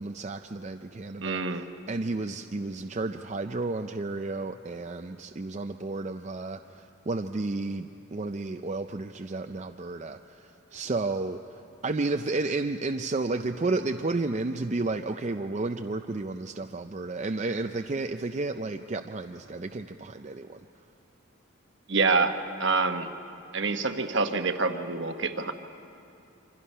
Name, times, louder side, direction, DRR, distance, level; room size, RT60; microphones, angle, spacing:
voice 1, 0.0-20.6, right 3 dB, 35° right, 5 dB, 0.4 m, -32 dB
voice 2, 1.2-1.6 21.9-23.1 23.5-25.5, right 4 dB, 60° right, 7 dB, 1.1 m, -26 dB
27.5 x 25.0 x 5.5 m, 2.6 s
head